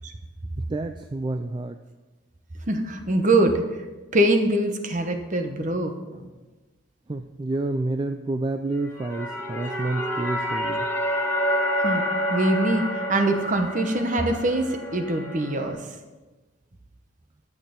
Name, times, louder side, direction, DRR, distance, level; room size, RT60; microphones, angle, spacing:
voice 1, 0.6-1.8 7.1-10.9, right 2 dB, 20° right, 7 dB, 0.3 m, -29 dB
voice 2, 2.7-3.6 4.1-6.2 11.7-12.0 12.3-15.8, right 1 dB, 35° right, 6 dB, 1.0 m, -23 dB
sound 1, 8.8-15.7, equal, 10° left, 2.0 m, -28 dB
11.0 x 7.3 x 5.2 m, 1.2 s
head